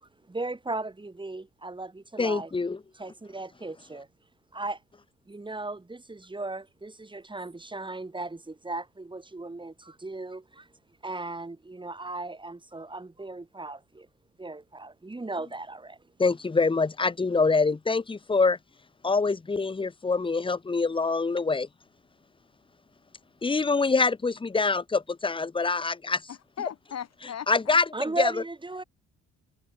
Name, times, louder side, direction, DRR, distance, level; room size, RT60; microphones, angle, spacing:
voice 1, 0.0-2.5 2.9-4.1 4.5-4.8 5.3-10.7 11.0-14.1 14.4-16.0 27.9-28.8, right 2 dB, 15° right, 2.5 m, -36 dB
voice 2, 2.2-2.8 16.2-18.6 19.0-21.7 23.4-26.2 27.5-27.8 28.2-28.3, left 4 dB, 15° left, 0.9 m, -25 dB
voice 3, 26.3-27.8, left 9 dB, 60° left, 5.3 m, -38 dB
cardioid pair, 90°, 30 cm